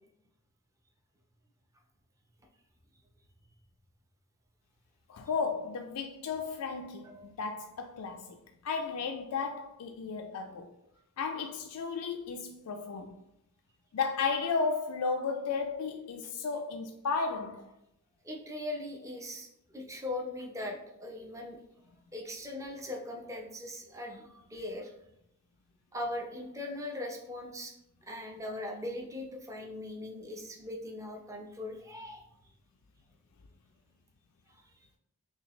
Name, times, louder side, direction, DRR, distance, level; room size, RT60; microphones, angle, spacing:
voice 1, 5.1-8.4 8.6-10.7 11.2-13.1 13.9-17.7, left 5 dB, 75° left, 0.4 m, -34 dB
voice 2, 7.0-7.4 18.2-19.5 19.7-21.6 22.1-24.9 25.9-27.7 28.0-32.2 34.5-34.6, left 1 dB, 15° right, 0.6 m, -40 dB
5.7 x 2.3 x 3.1 m
head